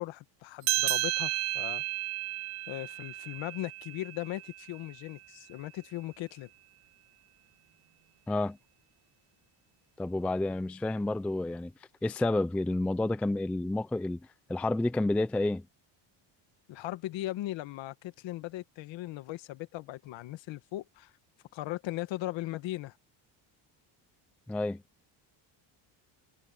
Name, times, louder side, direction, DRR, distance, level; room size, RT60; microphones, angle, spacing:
voice 1, 0.0-1.8 2.7-6.5 16.7-21.1 21.5-22.9, left 16 dB, 65° left, 1.5 m, -38 dB
sound 1, 0.6-5.5, right 17 dB, 90° right, 2.0 m, -33 dB
voice 2, 8.3-8.6 10.0-11.7 12.0-14.2 14.5-15.7 24.5-24.8, left 2 dB, 5° left, 0.3 m, -30 dB
cardioid pair, 160°, 49 cm